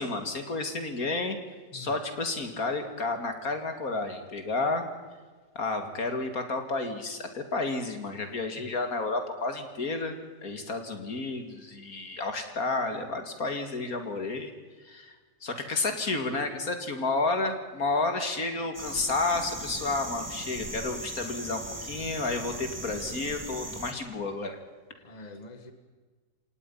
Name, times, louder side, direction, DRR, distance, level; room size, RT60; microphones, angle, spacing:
voice 1, 0.0-1.4 1.7-4.8 5.6-14.5 14.8-15.2 15.4-24.6 25.2-25.3, left 3 dB, 65° left, 7 dB, 2.8 m, -31 dB
sound 1, 18.7-23.9, right 1 dB, 10° right, 2.4 m, -39 dB
voice 2, 25.0-25.7, left 2 dB, 25° left, 8 dB, 1.7 m, -45 dB
27.0 x 18.5 x 5.6 m, 1.4 s
omnidirectional pair, 1.7 m